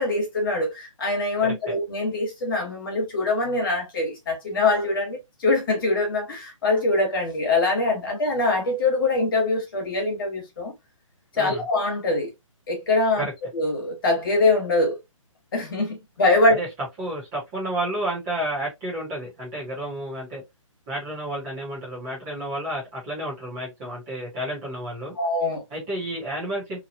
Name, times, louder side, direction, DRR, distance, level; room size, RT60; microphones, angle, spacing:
voice 1, 0.0-10.7 11.4-12.3 12.7-13.3 13.5-15.0 15.5-16.6 25.1-25.6, left 2 dB, 40° left, 1.4 m, -23 dB
voice 2, 1.4-1.7 11.3-11.6 13.2-13.3 16.5-16.7 17.0-20.4 20.9-25.1 25.7-26.8, right 1 dB, 15° right, 1.0 m, -31 dB
2.9 x 2.3 x 2.6 m
hypercardioid pair, 170°, 17 cm